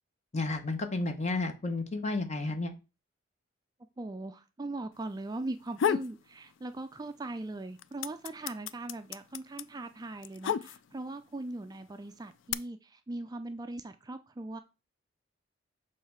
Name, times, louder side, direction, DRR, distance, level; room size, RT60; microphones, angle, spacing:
voice 1, 0.3-2.7, left 2 dB, 35° left, 0.9 m, -32 dB
voice 2, 4.0-14.6, right 2 dB, 20° right, 0.3 m, -40 dB
sound 1, 5.5-6.2 6.6-7.3 7.5-11.1 11.9-12.5, left 8 dB, 65° left, 0.3 m, -32 dB
6.5 x 3.2 x 5.7 m
head